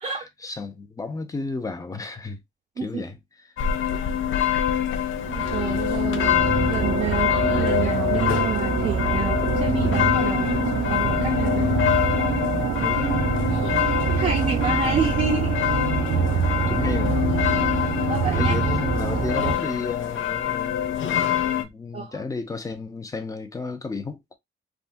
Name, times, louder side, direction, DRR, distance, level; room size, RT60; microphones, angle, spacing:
voice 1, 0.0-2.4 2.8-3.2 12.8-13.3 16.7-17.2 18.3-24.4, left 3 dB, 15° left, 0.5 m, -32 dB
sound 1, 3.6-21.6, left 10 dB, 75° left, 0.5 m, -25 dB
voice 2, 5.2-6.4 6.7-10.6 10.9-11.8 14.1-15.6 18.1-18.5 21.9-22.2, right 6 dB, 35° right, 0.6 m, -29 dB
sound 2, 5.2-19.5, right 5 dB, 80° right, 0.7 m, -25 dB
3.5 x 2.1 x 2.6 m
wide cardioid pair, 170°, 20 cm